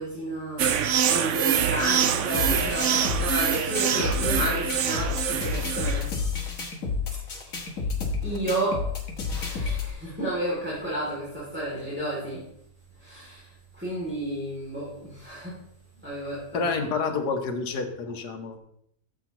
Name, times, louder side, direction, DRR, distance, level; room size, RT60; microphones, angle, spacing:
voice 1, 0.0-6.2 7.1-8.0 8.2-8.9 9.3-12.5 12.9-15.6 15.9-17.1, right 1 dB, 5° right, -8 dB, 2.7 m, -32 dB
sound 1, 0.6-6.1, right 8 dB, 65° right, 0.7 m, -25 dB
sound 2, 2.3-9.9, left 5 dB, 50° left, 1.7 m, -30 dB
voice 2, 16.5-18.6, left 4 dB, 70° left, 5 dB, 1.6 m, -29 dB
12.5 x 7.5 x 3.0 m, 0.74 s
omnidirectional pair, 1.9 m